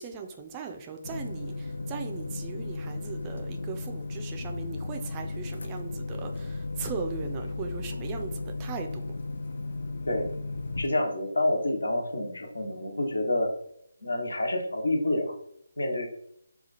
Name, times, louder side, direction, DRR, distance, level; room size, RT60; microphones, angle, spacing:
voice 1, 0.0-9.0, right 5 dB, 20° right, 5 dB, 0.4 m, -38 dB
sound 1, 1.0-10.9, left 3 dB, 65° left, 0.4 m, -35 dB
voice 2, 10.8-13.5 14.0-15.3 15.8-16.1, left 1 dB, 80° left, 2 dB, 1.0 m, -28 dB
2.8 x 2.3 x 4.1 m, 0.71 s
figure-of-eight pair, 155°, 0 cm